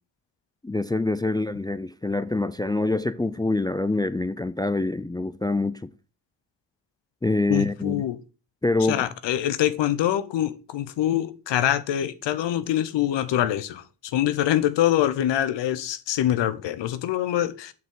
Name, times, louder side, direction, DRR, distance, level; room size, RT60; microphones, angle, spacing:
voice 1, 0.6-5.9 7.2-8.0 8.6-9.0, left 2 dB, 10° left, 0.4 m, -25 dB
voice 2, 7.5-8.2 8.9-17.7, left 12 dB, 80° left, 0.8 m, -24 dB
7.4 x 5.8 x 3.8 m
supercardioid pair, 55°, 43 cm